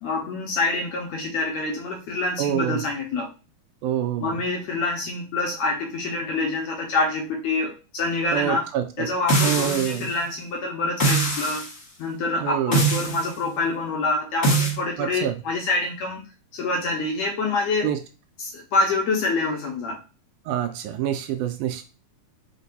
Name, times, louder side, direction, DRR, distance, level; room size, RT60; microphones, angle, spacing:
voice 1, 0.0-3.3 4.2-8.7 9.0-11.6 12.0-16.2 16.5-17.9 18.4-20.0, left 3 dB, 80° left, 1 dB, 1.6 m, -26 dB
voice 2, 2.4-2.8 3.8-4.4 8.3-9.1 9.4-10.1 12.4-12.8 15.0-15.4 17.8-18.0 20.5-21.8, right 11 dB, 80° right, 7 dB, 1.9 m, -26 dB
sound 1, 9.3-10.1 11.0-11.7 12.7-13.3 14.4-14.8, right 2 dB, 40° left, 0.9 m, -22 dB
5.1 x 2.2 x 4.0 m, 0.32 s
omnidirectional pair, 3.9 m